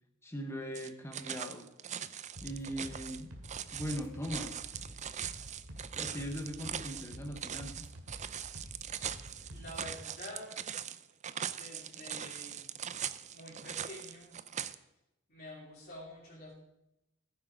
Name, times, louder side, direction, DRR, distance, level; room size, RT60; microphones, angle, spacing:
voice 1, 0.2-1.7 2.4-3.3 3.7-4.6 5.9-7.9, equal, 10° left, 4 dB, 0.9 m, -40 dB
sound 1, 0.7-14.7, right 9 dB, 35° right, 0.5 m, -41 dB
sound 2, 2.3-10.0, equal, 85° right, 2.5 m, -49 dB
voice 2, 9.5-10.5 11.4-12.7 13.3-14.3 15.3-16.5, left 1 dB, 45° left, -4 dB, 2.8 m, -48 dB
14.5 x 9.2 x 5.1 m, 0.89 s
head